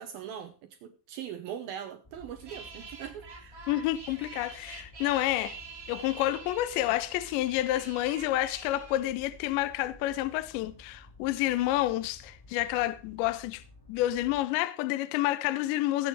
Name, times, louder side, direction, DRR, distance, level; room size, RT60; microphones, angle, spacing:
voice 1, 0.0-3.6, right 9 dB, 80° right, 2.1 m, -41 dB
sound 1, 2.0-14.4, left 2 dB, 15° left, 0.9 m, -54 dB
sound 2, 2.4-9.0, right 4 dB, 50° right, 0.9 m, -46 dB
voice 2, 3.7-5.6 5.9-13.6 13.9-16.1, left 15 dB, 80° left, 2.8 m, -29 dB
16.5 x 8.4 x 4.7 m
omnidirectional pair, 5.6 m